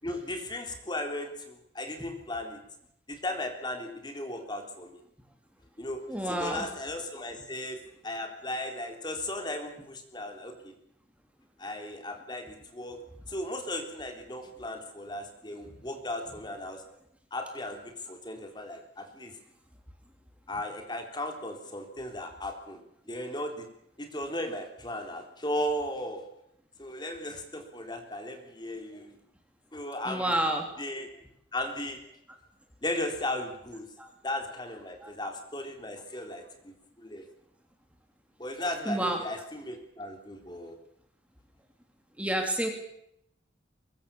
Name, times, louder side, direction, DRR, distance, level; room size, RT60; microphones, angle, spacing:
voice 1, 0.0-2.6 3.1-5.0 5.8-7.8 8.0-10.7 11.6-13.0 13.3-16.8 17.3-19.4 20.5-22.8 23.1-23.7 24.0-26.2 26.8-29.2 29.7-30.3 30.8-31.1 31.5-32.0 32.8-33.9 34.2-37.2 38.4-40.8, left 1 dB, 25° left, 5 dB, 3.7 m, -36 dB
voice 2, 6.1-6.7 30.1-30.7 34.0-34.1 35.0-35.1 38.8-39.2 42.2-42.7, right 1 dB, 5° right, 3 dB, 3.2 m, -29 dB
23.0 x 22.5 x 7.1 m, 0.76 s
head